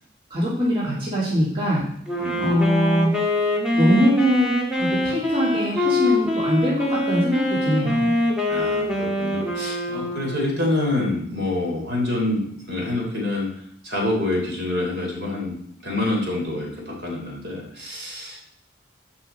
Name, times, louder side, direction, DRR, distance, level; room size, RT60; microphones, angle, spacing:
voice 1, 0.3-1.9 2.4-3.2 3.7-8.1, equal, 25° right, -7 dB, 2.5 m, -22 dB
Wind instrument woodwind instrument, 2.1-10.7, left 1 dB, 5° right, 1.6 m, -24 dB
voice 2, 2.1-2.5 8.5-18.4, left 2 dB, 55° right, 0 dB, 3.4 m, -27 dB
14.5 x 5.5 x 4.4 m, 0.70 s
head